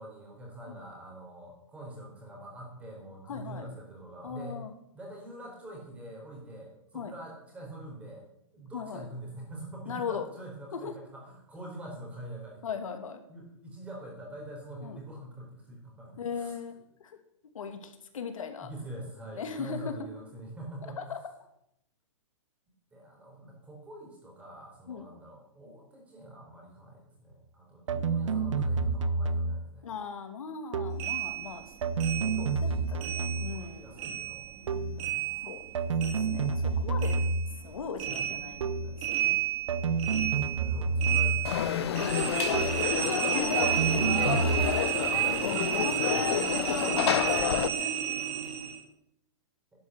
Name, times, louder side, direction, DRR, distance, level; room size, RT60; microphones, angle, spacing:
voice 1, 0.0-4.6 4.9-8.2 8.5-12.6 13.3-16.6 18.6-21.0 22.9-29.9 32.1-35.1 35.5-35.6 38.8-39.1 40.2-42.0 44.6-45.2 48.2-48.7, right 1 dB, 10° right, -1 dB, 4.2 m, -45 dB
voice 2, 3.3-3.7 4.2-4.7 6.9-7.1 8.7-9.1 9.9-10.2 10.7-10.9 12.6-13.2 14.8-15.0 16.2-16.7 17.0-17.1 17.5-18.7 19.3-20.1 21.0-21.2 24.9-25.1 29.8-31.6 32.2-34.1 35.4-35.6 36.0-37.2 37.6-38.7 39.2-39.4 43.0-43.7 45.4-46.9 47.4-47.9, left 6 dB, 85° left, 6 dB, 2.7 m, -38 dB
sound 1, 27.9-29.7 30.7-31.1 31.8-33.7 34.7-35.1 35.7-37.6 38.6-39.0 39.7-41.6 42.5-42.9 43.6-44.8, right 4 dB, 70° right, 1.1 m, -29 dB
sound 2, 31.0-33.7 34.0-36.7 37.0-48.8, right 10 dB, 30° right, 2.4 m, -32 dB
Conversation / Crowd, 41.4-47.7, left 10 dB, 55° left, 0.9 m, -29 dB
11.5 x 9.9 x 8.1 m, 0.76 s
hypercardioid pair, 165°, 17 cm